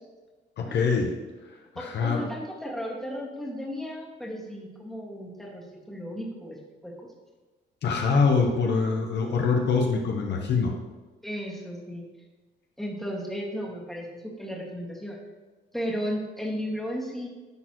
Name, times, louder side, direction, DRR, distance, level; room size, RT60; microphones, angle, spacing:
voice 1, 0.6-1.1 1.8-2.3 7.8-10.7, left 4 dB, 60° left, 1 dB, 0.9 m, -24 dB
voice 2, 1.7-6.6 6.8-6.9 11.2-12.1 12.8-15.2 15.7-17.3, equal, ahead, -3 dB, 1.8 m, -34 dB
10.5 x 4.0 x 3.0 m, 1.2 s
cardioid pair, 90°, 20 cm